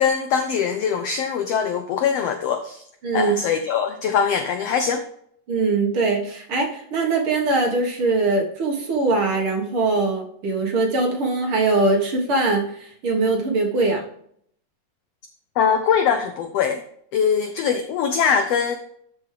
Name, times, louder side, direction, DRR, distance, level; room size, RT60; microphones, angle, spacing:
voice 1, 0.0-2.8 3.1-5.0 15.6-16.8 17.1-18.8, left 7 dB, 85° left, 7 dB, 1.4 m, -22 dB
voice 2, 3.0-3.4 5.5-14.0, right 3 dB, 50° right, 0 dB, 2.0 m, -22 dB
12.5 x 5.3 x 3.3 m, 0.65 s
omnidirectional pair, 3.7 m